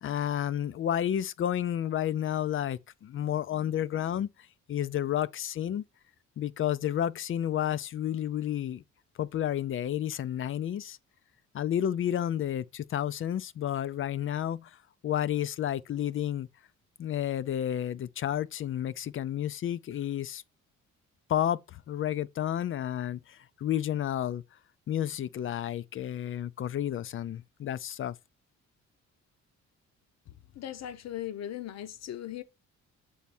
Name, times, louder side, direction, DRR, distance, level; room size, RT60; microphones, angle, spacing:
voice 1, 0.0-4.3 4.7-5.8 6.4-8.8 9.2-11.0 11.5-14.8 15.0-16.5 17.0-20.4 21.3-24.4 24.9-28.2, left 10 dB, 45° left, 0.4 m, -31 dB
voice 2, 30.6-32.4, left 11 dB, 60° left, 0.8 m, -38 dB
7.1 x 3.5 x 4.2 m
cardioid pair, 90°, 30 cm